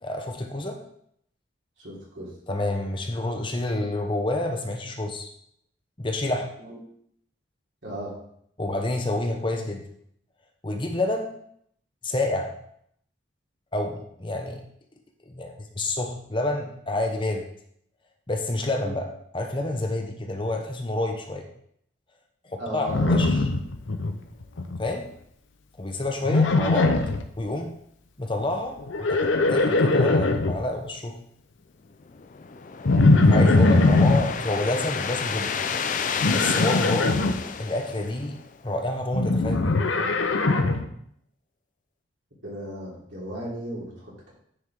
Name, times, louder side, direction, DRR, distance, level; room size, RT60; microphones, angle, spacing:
voice 1, 0.0-0.8 2.5-5.3 6.0-6.5 8.6-9.8 10.6-11.3 12.0-12.5 13.7-14.6 15.2-17.5 18.3-19.1 19.3-21.5 22.4-23.5 24.8-25.1 25.8-26.9 27.4-27.7 28.2-31.2 33.3-35.5 36.3-37.3 37.6-38.4 38.6-39.7, left 2 dB, 25° left, 3 dB, 0.8 m, -28 dB
voice 2, 1.8-2.3 6.6-6.8 7.8-8.1 18.8-19.0 22.6-23.2 42.4-44.3, equal, 75° right, -5 dB, 3.4 m, -35 dB
Livestock farm animals working animals, 22.9-24.1 24.4-24.9 26.2-27.2 28.8-30.6 32.9-34.2 36.2-37.3 39.1-40.9, left 2 dB, 85° left, 0.7 m, -20 dB
sound 1, 32.0-38.6, left 6 dB, 40° left, 0.4 m, -31 dB
9.7 x 4.9 x 3.7 m, 0.69 s
head